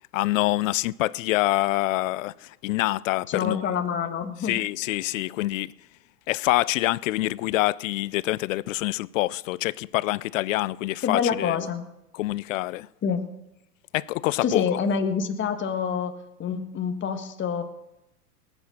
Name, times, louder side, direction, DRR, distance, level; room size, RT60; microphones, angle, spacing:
voice 1, 0.1-3.7 4.4-5.7 6.3-11.6 12.1-12.9 13.9-14.6, left 18 dB, 55° left, 0.5 m, -26 dB
voice 2, 3.3-4.5 11.0-11.8 13.0-13.2 14.4-16.1 16.4-17.6, left 6 dB, 25° left, 1.6 m, -26 dB
19.0 x 8.6 x 6.4 m
hypercardioid pair, 105°, 48 cm